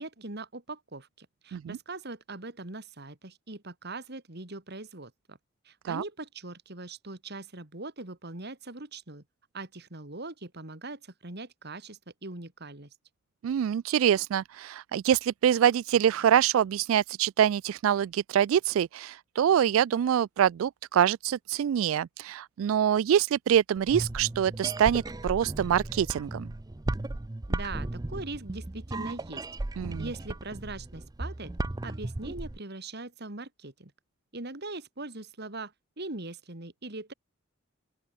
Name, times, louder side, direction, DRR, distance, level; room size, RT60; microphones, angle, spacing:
voice 1, 0.0-5.4 5.6-9.2 9.5-12.9 27.5-29.4 30.0-31.5 31.8-33.9 34.3-37.1, right 2 dB, 55° right, 3.0 m, -41 dB
voice 2, 13.4-26.5 29.8-30.0, right 9 dB, 80° right, 0.3 m, -25 dB
sound 1, 23.8-32.6, right 2 dB, 20° right, 0.5 m, -35 dB
open air
head